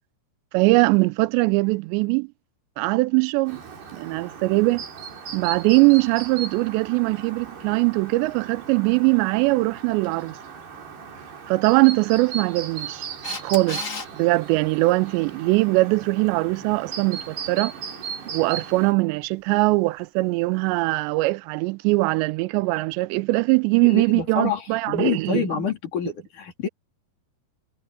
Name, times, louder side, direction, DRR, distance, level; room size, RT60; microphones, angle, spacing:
voice 1, 0.5-2.3 2.8-3.6 3.9-4.8 5.3-10.4 11.5-13.1 13.4-13.8 14.1-17.7 18.3-25.5, right 24 dB, 85° right, 2.8 m, -21 dB
Chirp tweet, 3.5-18.9, right 6 dB, 70° right, 6.6 m, -37 dB
Camera, 13.2-14.1 20.8-20.9, left 4 dB, 25° left, 2.6 m, -32 dB
voice 2, 23.8-26.7, left 7 dB, 50° left, 4.2 m, -27 dB
omnidirectional pair, 5.0 m